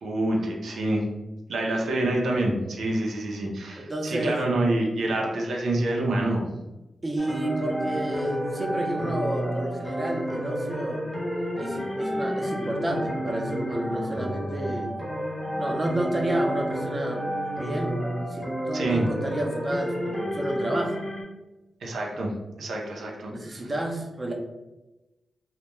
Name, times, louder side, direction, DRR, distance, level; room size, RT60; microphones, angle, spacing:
voice 1, 0.0-1.0 1.5-6.5 18.7-19.1 21.8-22.3 22.6-23.6, right 1 dB, 90° right, 0 dB, 0.4 m, -27 dB
voice 2, 3.8-4.4 7.0-11.0 11.6-15.0 15.6-17.3 17.6-17.9 18.3-21.0 23.3-24.3, right 1 dB, 30° right, 0 dB, 0.5 m, -30 dB
sound 1, 7.2-21.2, equal, 10° left, 0.6 m, -30 dB
2.2 x 2.1 x 2.9 m, 1.0 s
cardioid pair, 80°, 0 cm